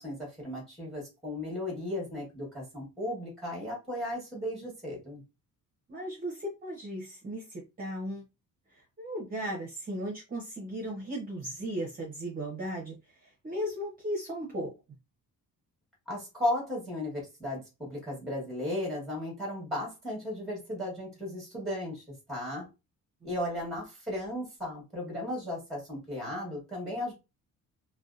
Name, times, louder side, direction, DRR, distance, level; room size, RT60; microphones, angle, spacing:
voice 1, 0.0-5.2 16.1-22.7 23.2-27.1, left 1 dB, ahead, 1.1 m, -35 dB
voice 2, 5.9-8.2 8.7-14.7 23.2-23.3, equal, 25° right, 0.7 m, -36 dB
2.7 x 2.2 x 2.4 m
cardioid pair, 160°, 35 cm